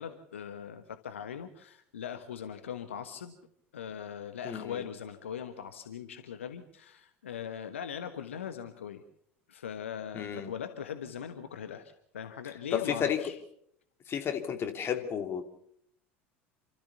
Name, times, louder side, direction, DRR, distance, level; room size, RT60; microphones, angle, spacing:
voice 1, 0.0-3.3 3.7-9.0 9.5-13.4, left 8 dB, 75° left, 8 dB, 1.2 m, -40 dB
voice 2, 4.4-4.8 10.1-10.5 12.7-13.2 14.1-15.4, left 8 dB, 35° left, 6 dB, 2.8 m, -32 dB
28.5 x 13.5 x 7.0 m, 0.69 s
figure-of-eight pair, 70°, 7 cm